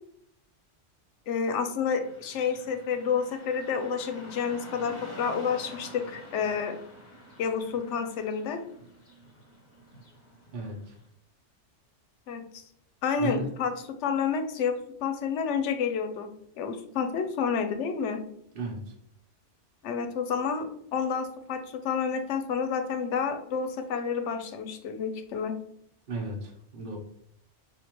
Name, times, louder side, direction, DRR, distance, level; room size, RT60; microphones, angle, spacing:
voice 1, 1.3-6.8 7.4-8.6 12.3-12.6 13.0-13.7 14.0-16.3 16.6-18.2 19.8-25.5, left 6 dB, 80° left, 8 dB, 0.9 m, -29 dB
Car passing by / Traffic noise roadway noise, 2.0-11.1, equal, 45° left, 0.9 m, -48 dB
voice 2, 10.5-10.9 13.2-13.5 18.5-18.8 26.1-27.0, right 2 dB, 50° right, -1 dB, 0.9 m, -34 dB
4.3 x 2.5 x 2.9 m, 0.71 s
omnidirectional pair, 1.2 m